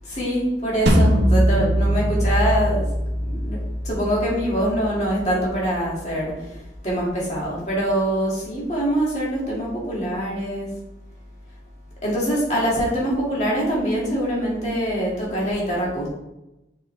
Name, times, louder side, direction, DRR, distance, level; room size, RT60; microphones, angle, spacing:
voice 1, 0.0-2.9 3.2-3.6 3.8-10.7 12.0-16.1, equal, 40° left, -5 dB, 2.2 m, -24 dB
sound 1, 0.9-5.9, equal, 75° right, 1.0 m, -22 dB
6.6 x 4.8 x 3.4 m, 0.94 s
head